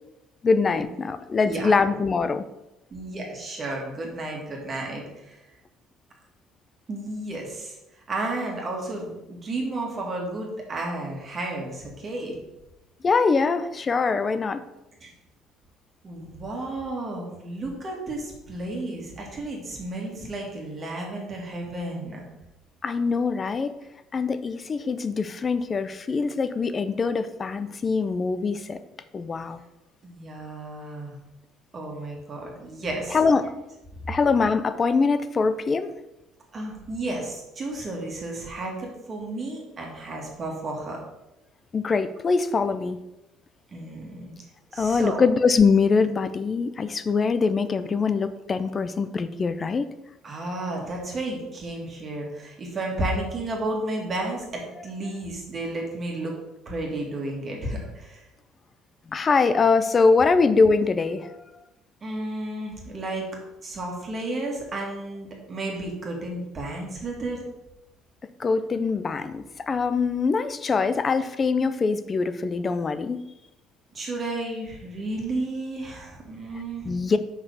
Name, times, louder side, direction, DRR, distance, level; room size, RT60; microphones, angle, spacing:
voice 1, 0.4-2.5 13.0-14.6 22.8-23.7 24.1-28.8 29.1-29.6 33.1-33.5 34.1-35.9 41.7-43.0 44.7-49.9 59.1-61.4 68.4-73.2 76.8-77.2, left 4 dB, 25° left, 12 dB, 0.5 m, -23 dB
voice 2, 2.9-5.4 6.9-7.8 8.1-12.4 15.0-15.1 16.0-22.2 30.0-31.1 31.7-33.2 36.5-41.0 43.7-44.3 44.7-45.2 50.2-56.3 56.7-58.2 62.0-63.3 63.6-67.5 73.9-77.0, right 2 dB, 30° right, -1 dB, 1.9 m, -32 dB
5.4 x 4.9 x 6.4 m, 0.95 s
cardioid pair, 140°, 0 cm